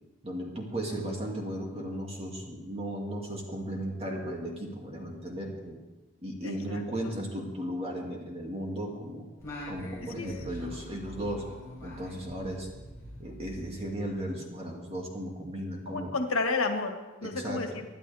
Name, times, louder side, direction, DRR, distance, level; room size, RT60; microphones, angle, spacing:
voice 1, 0.2-5.8 6.2-9.3 9.7-11.5 11.8-12.7 13.2-16.1 17.2-17.8, equal, 30° right, -1 dB, 2.5 m, -36 dB
voice 2, 6.4-6.8 10.1-10.3 15.9-17.8, left 3 dB, 90° left, 5 dB, 1.7 m, -31 dB
Singing, 9.4-14.2, left 1 dB, 15° left, 4.6 m, -44 dB
25.0 x 11.0 x 3.5 m, 1.2 s
head